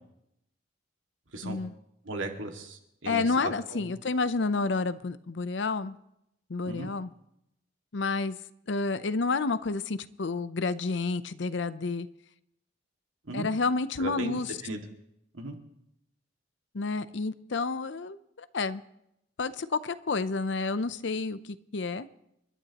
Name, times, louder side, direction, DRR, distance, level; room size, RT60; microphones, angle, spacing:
voice 1, 1.4-1.7 3.1-6.0 6.5-7.1 7.9-8.4 8.7-12.1 13.3-14.6 16.7-18.8 19.4-22.1, left 3 dB, 65° left, 13 dB, 0.6 m, -30 dB
voice 2, 2.1-3.2 3.7-3.9 6.7-6.9 13.3-13.5 14.0-14.8 15.3-15.5, right 2 dB, 80° right, 3 dB, 2.1 m, -36 dB
29.0 x 12.0 x 3.0 m, 0.80 s
head